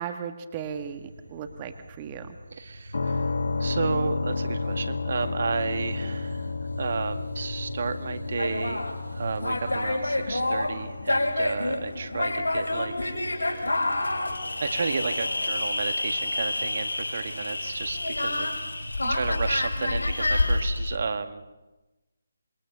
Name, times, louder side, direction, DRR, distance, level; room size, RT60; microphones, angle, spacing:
voice 1, 0.0-2.4 19.0-19.1, right 8 dB, 25° right, 8 dB, 1.5 m, -36 dB
sound 1, 0.5-19.8, equal, 80° right, 5.0 m, -43 dB
voice 2, 2.5-3.3 3.6-6.5 6.8-13.7 14.6-18.5 19.1-21.5, right 4 dB, 50° right, 8 dB, 1.7 m, -32 dB
sound 2, 2.9-16.6, left 3 dB, 60° left, 1.4 m, -34 dB
sound 3, 8.4-21.0, left 2 dB, 75° left, 6.6 m, -28 dB
26.5 x 23.0 x 6.9 m, 1.1 s
figure-of-eight pair, 145°, 0 cm